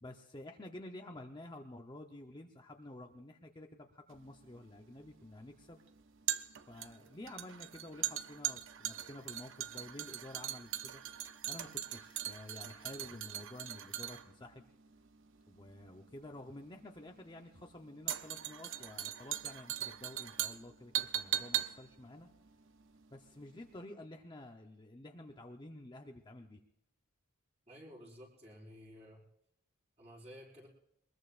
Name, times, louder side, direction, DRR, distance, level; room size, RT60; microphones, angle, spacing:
voice 1, 0.0-5.8 6.7-11.0 11.5-14.7 15.5-22.3 23.1-26.6, left 1 dB, 20° left, 2 dB, 0.9 m, -50 dB
sound 1, 4.1-23.4 23.7-23.8, right 12 dB, 60° right, 0.6 m, -40 dB
voice 2, 27.7-29.2 30.0-30.7, equal, 30° right, -2 dB, 5.2 m, -53 dB
23.0 x 21.0 x 2.6 m, 0.77 s
head